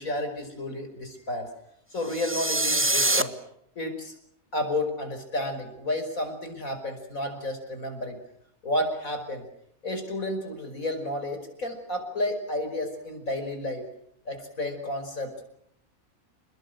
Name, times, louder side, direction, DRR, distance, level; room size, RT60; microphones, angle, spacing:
voice 1, 0.0-1.5 1.9-3.3 3.8-4.1 4.5-8.2 8.6-9.5 9.8-13.8 14.3-15.3, left 1 dB, 75° left, 6 dB, 5.5 m, -31 dB
sound 1, 2.0-3.2, right 2 dB, 10° right, 1.1 m, -24 dB
28.5 x 21.0 x 7.8 m, 0.74 s
omnidirectional pair, 1.5 m